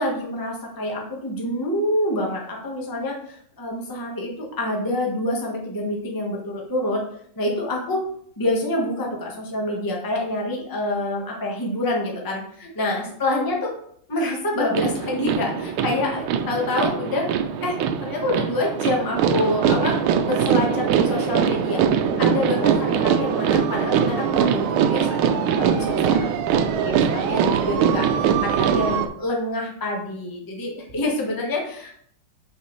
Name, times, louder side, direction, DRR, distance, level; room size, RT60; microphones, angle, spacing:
voice 1, 0.0-7.0 7.4-8.1 8.4-13.7 14.1-17.3 17.6-20.0 20.2-26.9 27.3-31.9, left 1 dB, 15° left, -1 dB, 0.9 m, -27 dB
sound 1, 14.7-29.1, right 7 dB, 85° right, 1.4 m, -22 dB
6.0 x 5.7 x 3.1 m, 0.65 s
omnidirectional pair, 2.3 m